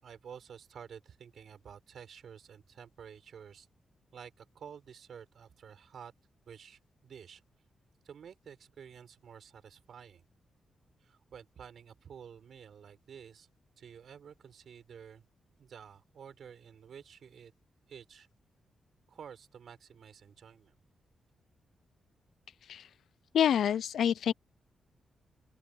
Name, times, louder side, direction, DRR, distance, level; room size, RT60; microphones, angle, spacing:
voice 1, 0.0-3.7 4.1-6.1 6.5-7.4 8.0-10.2 11.0-13.5 13.8-15.2 15.6-17.5 17.9-18.3 19.1-20.7, right 7 dB, 65° right, 5.6 m, -51 dB
voice 2, 23.3-24.3, left 9 dB, 80° left, 0.5 m, -27 dB
open air
wide cardioid pair, 145°, 0 cm